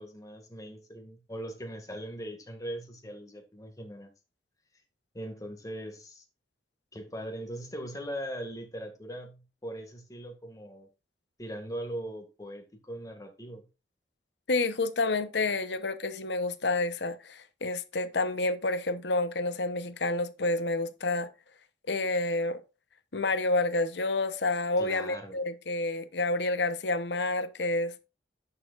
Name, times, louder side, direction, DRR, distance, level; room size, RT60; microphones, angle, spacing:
voice 1, 0.0-4.1 5.1-6.2 6.9-10.9 11.4-13.7 24.8-25.4, right 1 dB, 20° left, 2.0 m, -40 dB
voice 2, 14.5-21.3 21.9-22.6 23.1-27.9, left 2 dB, 70° left, 0.9 m, -29 dB
11.0 x 6.7 x 2.5 m
head